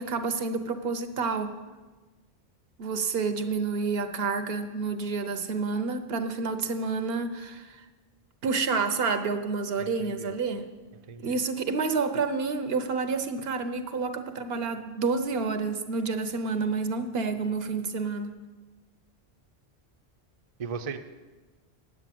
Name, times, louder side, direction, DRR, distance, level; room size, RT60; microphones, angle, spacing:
voice 1, 0.0-1.5 2.8-7.8 8.4-10.7 11.2-18.3, right 4 dB, 70° right, 9 dB, 1.0 m, -29 dB
voice 2, 9.8-10.3 10.9-11.4 20.6-21.0, right 6 dB, 40° right, 7 dB, 0.6 m, -38 dB
9.7 x 7.9 x 7.6 m, 1.2 s
omnidirectional pair, 1.1 m